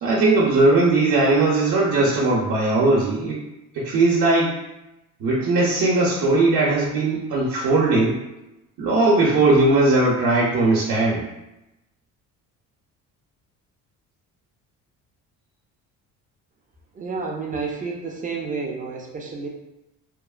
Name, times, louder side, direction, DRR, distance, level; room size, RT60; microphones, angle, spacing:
voice 1, 0.0-3.4 3.7-4.5 5.2-8.2 8.8-11.2, right 2 dB, 70° right, -5 dB, 0.7 m, -19 dB
voice 2, 16.9-19.5, right 4 dB, 25° right, 0 dB, 0.4 m, -30 dB
2.9 x 2.0 x 2.3 m, 0.94 s
cardioid pair, 120°, 32 cm